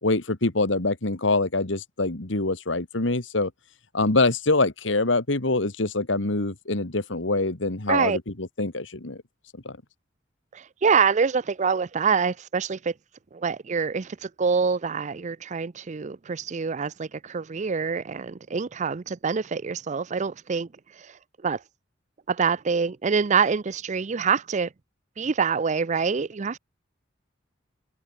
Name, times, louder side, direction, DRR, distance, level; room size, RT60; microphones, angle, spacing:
voice 1, 0.0-3.5 3.9-9.2 9.7-9.8, left 2 dB, 75° left, 2.0 m, -25 dB
voice 2, 10.5-12.9 13.3-20.7 21.0-21.2 21.4-21.6 22.3-24.7 25.2-26.6, right 5 dB, 40° right, 0.5 m, -25 dB
head